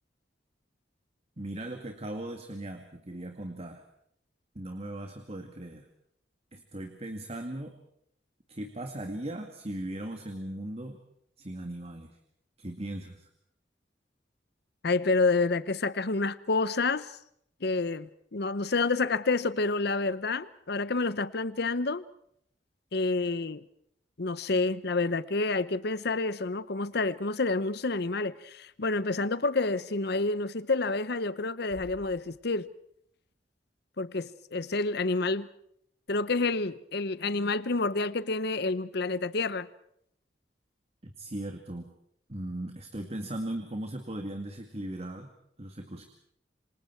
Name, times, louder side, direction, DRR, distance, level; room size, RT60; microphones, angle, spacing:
voice 1, 1.4-3.8 4.6-5.9 6.5-7.8 8.5-11.0 11.4-12.2 12.6-13.3 41.0-41.9 42.3-45.3 45.6-46.0, right 1 dB, 35° right, 2.2 m, -38 dB
voice 2, 14.8-17.1 17.6-22.0 22.9-23.6 24.2-32.7 34.0-35.5 36.1-39.7, left 3 dB, 65° left, 0.9 m, -28 dB
Bass drum, 31.7-33.1, equal, 65° right, 6.3 m, -52 dB
28.0 x 26.0 x 4.6 m
head